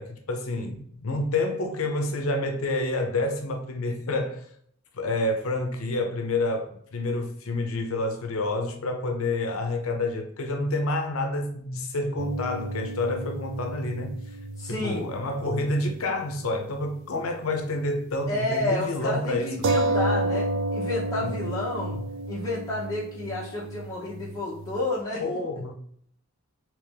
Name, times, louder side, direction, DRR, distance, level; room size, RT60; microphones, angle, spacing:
voice 1, 0.0-4.4 4.9-14.2 14.7-19.5 21.2-21.3 21.9-22.0 25.2-25.7, left 2 dB, 75° left, 0.6 m, -28 dB
sound 1, 12.2-16.0 16.3-16.4 19.6-24.9, right 2 dB, 55° right, 0.3 m, -31 dB
voice 2, 14.6-15.1 18.3-22.0 22.3-25.2, left 2 dB, 15° left, 0.8 m, -30 dB
3.3 x 3.0 x 3.4 m
head